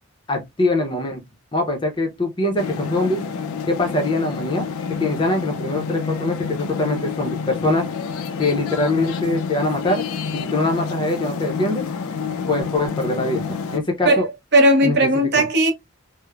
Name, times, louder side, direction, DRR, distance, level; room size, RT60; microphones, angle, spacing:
voice 1, 0.3-1.2 1.5-3.2 3.7-4.7 5.0-7.9 8.4-10.1 10.3-11.8 12.5-14.3 14.8-15.0, left 2 dB, 20° left, 0.5 m, -23 dB
sound 1, 2.6-13.8, left 5 dB, 80° left, 0.4 m, -28 dB
voice 2, 14.0-15.7, right 1 dB, 50° right, 0.6 m, -17 dB
3.1 x 2.0 x 2.2 m
head